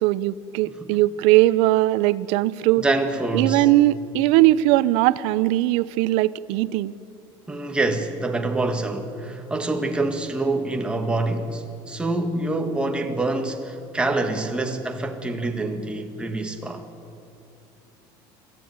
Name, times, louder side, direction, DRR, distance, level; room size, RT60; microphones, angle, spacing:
voice 1, 0.0-2.8 3.3-6.9, right 16 dB, 75° right, 0.6 m, -19 dB
voice 2, 0.7-1.0 2.8-3.7 7.5-16.9, right 2 dB, 10° right, 1.8 m, -26 dB
26.5 x 14.0 x 9.4 m
cardioid pair, 145°, 11 cm